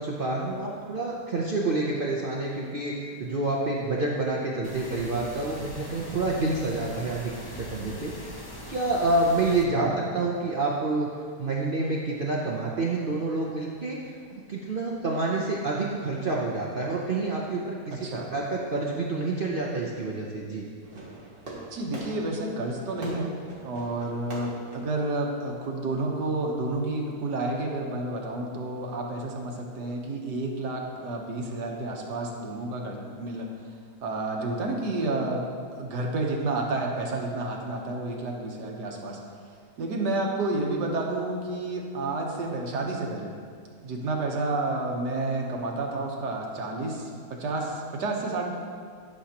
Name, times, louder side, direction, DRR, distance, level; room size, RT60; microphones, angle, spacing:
voice 1, 0.0-8.4 8.7-11.1 11.4-20.6, right 2 dB, 55° right, -3 dB, 0.6 m, -28 dB
sound 1, 4.6-9.6, left 1 dB, 40° left, 0.3 m, -41 dB
voice 2, 9.7-10.0 17.9-18.3 21.7-23.3 23.6-33.5 34.0-39.2 39.8-43.3 43.8-48.5, right 2 dB, 85° right, 0 dB, 1.6 m, -30 dB
Fireworks, 20.8-25.9, right 1 dB, 35° right, 1.6 m, -44 dB
11.5 x 6.2 x 2.9 m, 2.1 s
omnidirectional pair, 1.8 m